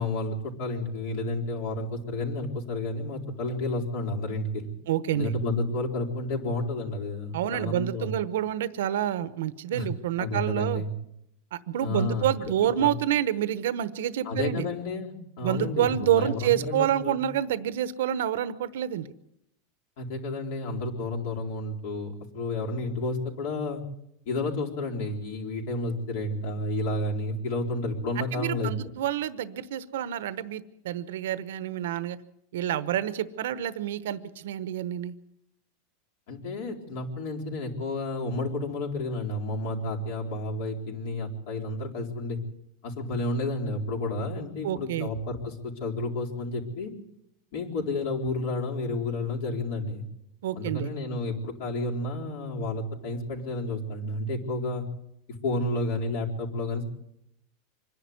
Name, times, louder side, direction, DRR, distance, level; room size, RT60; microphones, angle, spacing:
voice 1, 0.0-4.7 5.1-8.1 9.7-9.9 10.2-10.9 11.8-12.5 12.8-12.9 14.2-17.2 20.0-23.8 24.3-28.7 36.3-42.4 42.8-46.9 47.5-50.0 50.5-54.9 55.4-56.8, left 2 dB, 65° left, -1 dB, 4.2 m, -31 dB
voice 2, 4.9-5.3 7.3-10.8 11.5-14.7 15.4-19.1 28.2-32.2 32.5-35.1 44.6-45.1 50.4-50.9, right 11 dB, 85° right, 14 dB, 1.0 m, -28 dB
25.5 x 11.0 x 9.5 m, 0.81 s
supercardioid pair, 155°, 0 cm